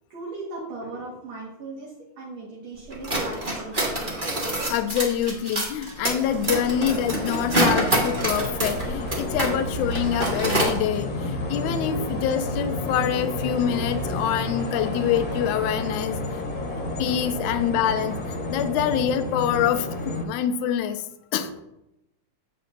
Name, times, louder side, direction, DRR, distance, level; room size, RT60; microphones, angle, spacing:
voice 1, 0.1-4.1 6.1-6.3 9.5-9.6 11.8-12.1 17.4-17.6 20.1-20.2 21.4-21.5, right 3 dB, 60° right, -5 dB, 3.1 m, -39 dB
sound 1, 2.9-9.6 9.8-10.8, right 1 dB, 20° right, 1.4 m, -26 dB
voice 2, 4.7-16.2 17.0-21.0 21.3-21.5, left 9 dB, 85° left, 9 dB, 2.0 m, -26 dB
sound 2, 5.8-20.2, left 1 dB, 45° left, 1.9 m, -31 dB
9.5 x 8.4 x 2.8 m, 0.85 s
omnidirectional pair, 3.5 m